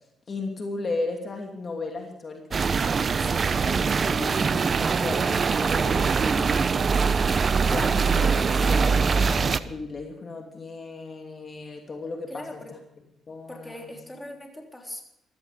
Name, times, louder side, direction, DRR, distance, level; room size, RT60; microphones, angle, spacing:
voice 1, 0.3-2.6 3.5-6.7 7.5-12.6 13.3-13.8, left 3 dB, 40° left, 2 dB, 2.7 m, -35 dB
sound 1, 2.5-9.6, right 5 dB, 40° right, 0.8 m, -23 dB
voice 2, 3.2-3.7 12.3-12.8 13.5-15.0, left 1 dB, 10° left, 1 dB, 3.5 m, -41 dB
15.5 x 14.0 x 5.1 m, 0.85 s
cardioid pair, 90°, 0 cm